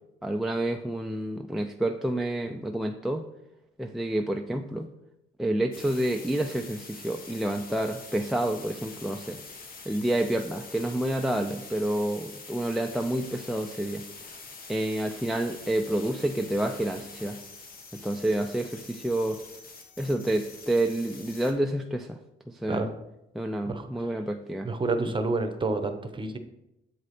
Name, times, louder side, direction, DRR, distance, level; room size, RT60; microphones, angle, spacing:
voice 1, 0.2-3.2 3.8-4.9 5.4-9.4 9.9-14.0 14.7-17.4 17.9-19.4 20.0-22.2 22.5-22.8 23.3-24.7, right 1 dB, ahead, 3 dB, 0.4 m, -29 dB
sound 1, 5.7-21.5, left 4 dB, 45° left, 1.2 m, -45 dB
voice 2, 23.7-24.1 24.6-26.4, right 3 dB, 25° right, 7 dB, 0.9 m, -29 dB
7.6 x 4.7 x 4.2 m, 0.89 s
cardioid pair, 90°, 20 cm